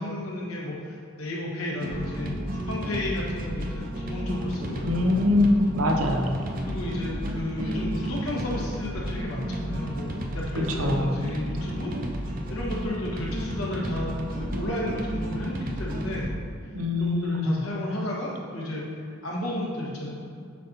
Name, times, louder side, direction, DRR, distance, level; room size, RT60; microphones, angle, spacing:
voice 1, 0.0-5.2 6.6-11.9 12.2-16.3 17.0-20.1, left 1 dB, 85° left, -4 dB, 1.5 m, -33 dB
sound 1, 1.8-16.4, equal, 40° right, 0.5 m, -32 dB
voice 2, 4.8-6.4 10.8-11.2 16.7-17.6, left 2 dB, 85° right, 2 dB, 0.7 m, -23 dB
7.3 x 2.8 x 5.5 m, 2.4 s
head